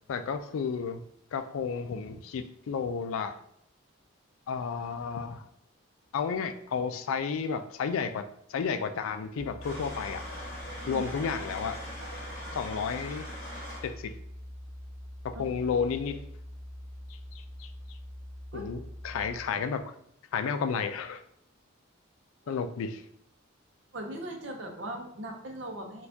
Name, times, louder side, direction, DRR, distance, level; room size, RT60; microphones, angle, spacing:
voice 1, 0.1-1.0 1.3-3.4 4.5-5.4 6.1-8.2 8.5-10.2 10.9-11.8 12.5-13.2 13.8-14.1 15.2-16.2 17.3-17.7 18.5-19.8 20.3-21.2 22.5-23.0, left 6 dB, 80° left, 8 dB, 0.3 m, -32 dB
sound 1, 9.3-19.3, left 1 dB, 10° right, 0.9 m, -44 dB
sound 2, 9.6-13.9, equal, 45° left, 1.2 m, -41 dB
voice 2, 23.9-26.1, right 1 dB, 60° right, 3 dB, 0.6 m, -39 dB
4.1 x 2.3 x 2.7 m, 0.71 s
head